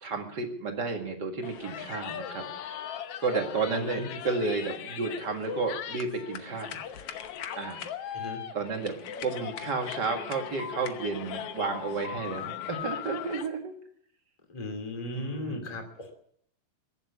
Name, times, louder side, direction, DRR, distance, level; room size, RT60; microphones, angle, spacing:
voice 1, 0.0-2.5 3.2-6.8 7.5-8.1 8.5-9.0 9.2-13.7 15.1-15.7, right 4 dB, 35° right, 3 dB, 1.9 m, -32 dB
sound 1, 1.4-13.5, left 9 dB, 85° left, 1.3 m, -38 dB
voice 2, 3.7-4.1 8.1-8.4 14.5-16.1, left 2 dB, 10° left, 3 dB, 2.0 m, -36 dB
22.0 x 7.5 x 8.2 m, 0.66 s
omnidirectional pair, 4.2 m